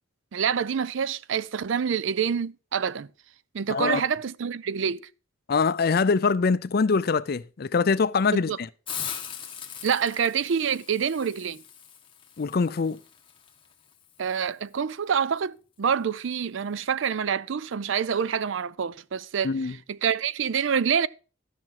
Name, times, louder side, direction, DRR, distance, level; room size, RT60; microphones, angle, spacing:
voice 1, 0.3-3.1 3.5-5.0 8.3-8.6 9.8-11.6 14.2-19.5 19.9-21.1, right 7 dB, 70° right, 0.4 m, -26 dB
voice 2, 3.7-4.0 5.5-8.7 12.4-13.0 19.4-19.8, left 4 dB, 50° left, 0.4 m, -23 dB
Hiss, 8.9-14.5, left 8 dB, 25° left, 1.3 m, -40 dB
13.0 x 6.0 x 5.8 m
head